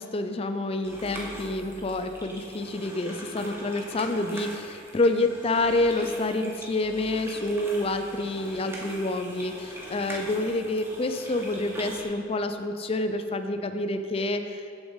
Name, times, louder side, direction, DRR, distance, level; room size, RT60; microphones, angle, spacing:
voice 1, 0.0-14.6, left 2 dB, 30° left, 8 dB, 0.4 m, -28 dB
sound 1, 0.8-12.0, right 1 dB, 15° right, 1.3 m, -41 dB
8.0 x 7.2 x 5.5 m, 2.5 s
head